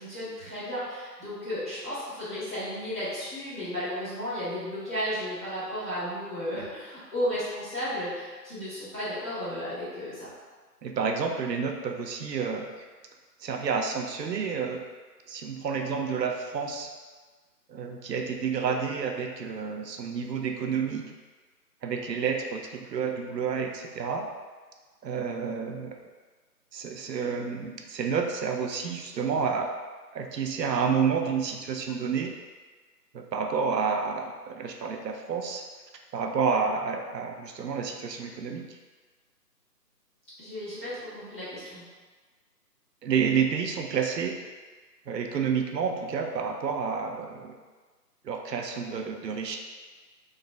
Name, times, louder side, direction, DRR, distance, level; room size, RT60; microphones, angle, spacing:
voice 1, 0.0-10.3 40.4-41.8, equal, 10° left, -20 dB, 1.4 m, -34 dB
voice 2, 10.8-12.7 13.4-14.8 15.3-16.9 17.7-21.1 21.8-24.3 25.0-26.0 26.7-29.7 30.1-32.3 33.1-35.6 36.1-38.6 43.0-44.3 45.1-47.6 48.2-49.6, right 6 dB, 85° right, 3 dB, 0.6 m, -29 dB
3.9 x 3.2 x 2.3 m, 1.4 s
hypercardioid pair, 170°, 49 cm